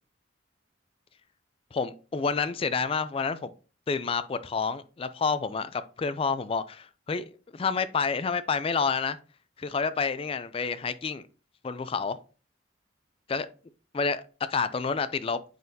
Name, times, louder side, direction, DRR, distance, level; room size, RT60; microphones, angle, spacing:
voice 1, 1.7-3.5 3.9-9.2 9.6-11.2 11.6-12.2 13.3-13.5 13.9-14.2 14.5-15.4, left 5 dB, 30° left, 0.3 m, -29 dB
9.3 x 4.0 x 2.7 m
head